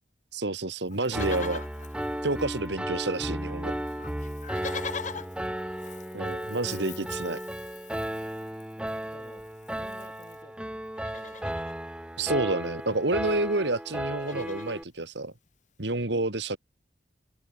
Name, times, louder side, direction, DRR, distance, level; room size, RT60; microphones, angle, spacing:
voice 1, 0.3-1.6 2.2-3.7 6.1-7.4 12.2-15.3 15.8-16.6, right 2 dB, 75° right, 2.1 m, -29 dB
Livestock farm animals working animals, 0.9-2.9 3.2-3.3 3.5-10.4 10.9-11.8 13.0-13.1 13.3-13.5 13.9-14.9 15.5-15.6, left 6 dB, 45° left, 1.2 m, -43 dB
Piano, 1.1-14.8, right 1 dB, 5° right, 0.9 m, -35 dB
voice 2, 5.0-5.7 8.7-11.7, left 1 dB, 25° left, 6.8 m, -54 dB
head